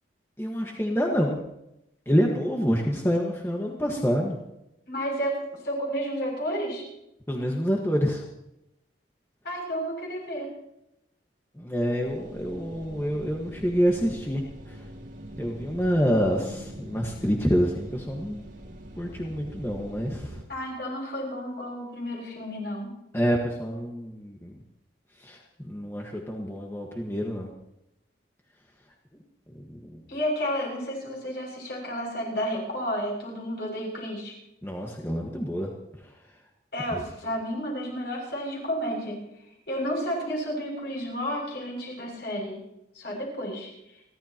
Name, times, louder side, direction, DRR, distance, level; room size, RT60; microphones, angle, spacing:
voice 1, 0.4-1.4 2.1-4.4 7.3-8.2 11.6-14.4 15.4-18.4 19.0-20.3 23.1-24.5 25.2-25.4 25.7-27.5 29.9-30.0 34.6-35.7 36.9-37.0, equal, 15° left, -1 dB, 1.6 m, -27 dB
voice 2, 4.9-6.8 9.4-10.5 20.5-22.9 30.1-34.3 36.7-39.2 39.7-42.6 43.0-43.7, equal, 60° left, -1 dB, 6.9 m, -31 dB
sound 1, 12.0-20.5, equal, 85° right, 3.2 m, -43 dB
30.0 x 12.5 x 3.0 m, 0.84 s
head